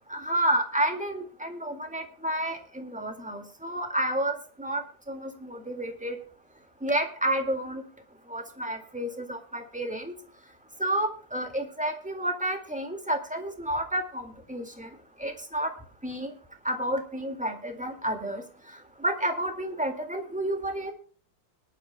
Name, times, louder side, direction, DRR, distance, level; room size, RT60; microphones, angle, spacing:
voice 1, 0.1-4.8 5.1-6.2 6.8-7.8 8.3-10.1 10.8-14.9 15.2-15.7 16.0-16.3 16.6-18.4 19.0-20.9, right 1 dB, 5° right, 5 dB, 1.8 m, -30 dB
21.5 x 11.5 x 2.2 m, 0.42 s
omnidirectional pair, 2.4 m